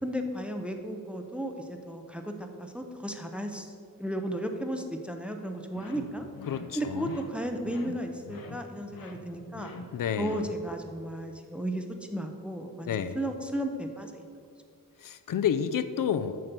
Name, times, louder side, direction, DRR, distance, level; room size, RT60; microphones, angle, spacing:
voice 1, 0.0-3.7 4.0-6.3 6.7-9.7 10.2-14.2, right 1 dB, 5° right, 4 dB, 0.5 m, -34 dB
sound 1, 5.7-10.8, left 3 dB, 85° left, 1.0 m, -46 dB
voice 2, 6.5-7.2 9.9-10.4 12.9-13.2 15.0-16.4, left 8 dB, 70° left, 11 dB, 0.5 m, -30 dB
7.6 x 5.8 x 6.7 m, 2.3 s
wide cardioid pair, 180°, 34 cm